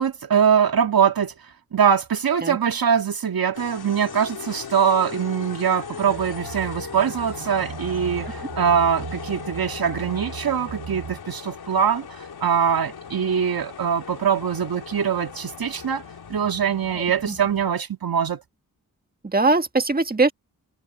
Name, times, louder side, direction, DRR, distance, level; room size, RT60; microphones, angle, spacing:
voice 1, 0.0-1.3 1.7-16.0 16.3-18.4, right 7 dB, 70° right, 2.1 m, -22 dB
sound 1, 3.5-17.8, left 6 dB, 80° left, 4.4 m, -38 dB
sound 2, 6.0-11.2, right 7 dB, 85° right, 7.3 m, -38 dB
voice 2, 16.9-17.4 19.2-20.3, right 3 dB, 25° right, 1.6 m, -21 dB
cardioid pair, 45°, 37 cm